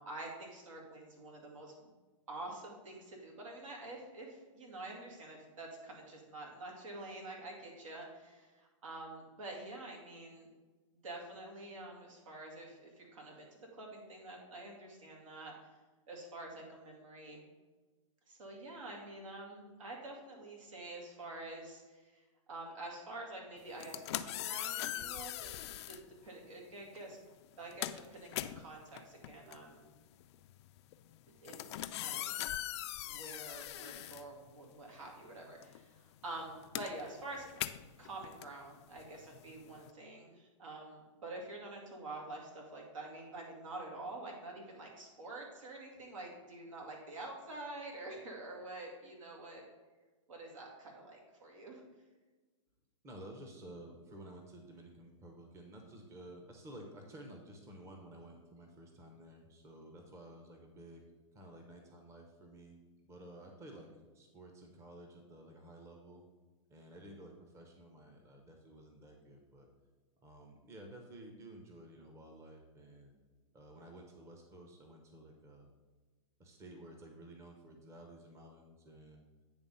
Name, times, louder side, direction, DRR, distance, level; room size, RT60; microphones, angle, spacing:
voice 1, 0.0-1.7 2.3-10.5 10.9-15.5 16.1-17.5 18.3-22.2 22.5-25.5 25.9-27.2 27.6-29.9 31.3-32.4 32.7-37.5 38.0-49.6 50.3-51.8, right 2 dB, 75° right, 0 dB, 2.2 m, -47 dB
sound 1, 23.7-26.1 26.9-27.1 27.4-35.0 35.2-39.9, left 13 dB, 55° left, 0.4 m, -42 dB
voice 2, 53.0-61.0 61.3-66.2 66.7-69.7 70.2-73.2 73.5-75.7 76.4-79.2, right 1 dB, 15° right, 2 dB, 0.9 m, -53 dB
9.0 x 3.5 x 5.5 m, 1.3 s
hypercardioid pair, 130°, 17 cm